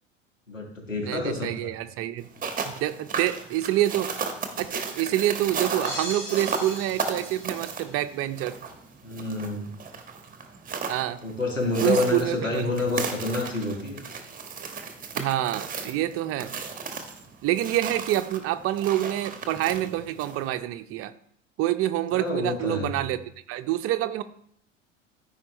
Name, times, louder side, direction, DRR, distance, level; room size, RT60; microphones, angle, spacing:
voice 1, 0.5-1.7 9.0-9.7 11.2-14.0 22.1-23.1, left 2 dB, 90° left, 1 dB, 1.7 m, -28 dB
voice 2, 1.0-2.3 2.6-4.1 4.6-8.6 10.9-11.2 11.8-12.7 15.1-16.5 17.4-21.1 21.6-23.2 23.5-24.2, right 14 dB, 35° right, 10 dB, 0.7 m, -27 dB
sound 1, 2.2-20.5, right 5 dB, 20° right, 1.3 m, -35 dB
sound 2, 5.8-8.1, equal, 30° left, 3.8 m, -38 dB
14.0 x 5.1 x 3.1 m, 0.66 s
figure-of-eight pair, 75°, 37 cm